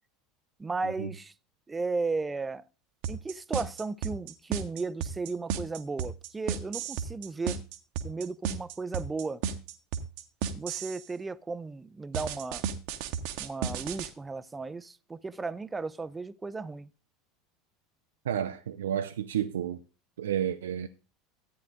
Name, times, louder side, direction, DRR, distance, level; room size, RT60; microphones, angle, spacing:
voice 1, 0.6-1.3 1.7-2.6 3.1-7.6 8.0-9.4 10.5-12.7 13.4-16.9, right 3 dB, 15° right, 0.5 m, -35 dB
sound 1, 3.0-11.0 12.1-14.1, right 8 dB, 55° right, 1.0 m, -33 dB
voice 2, 18.2-19.8 20.2-20.9, right 10 dB, 70° right, 0.4 m, -31 dB
14.0 x 9.4 x 2.5 m
figure-of-eight pair, 75°, 0 cm